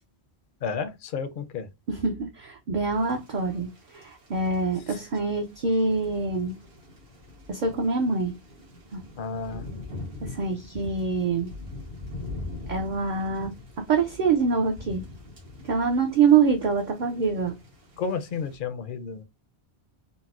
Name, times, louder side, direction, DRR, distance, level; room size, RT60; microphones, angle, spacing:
voice 1, 0.6-1.7 9.2-9.7 18.0-19.2, left 5 dB, 60° left, 0.6 m, -31 dB
voice 2, 1.9-6.6 7.5-8.3 8.9-9.0 10.2-11.5 12.7-15.0 15.6-17.5, right 5 dB, 55° right, 0.6 m, -25 dB
Thunder / Rain, 2.9-18.6, left 2 dB, 75° right, 1.4 m, -43 dB
4.0 x 2.0 x 2.3 m
omnidirectional pair, 1.1 m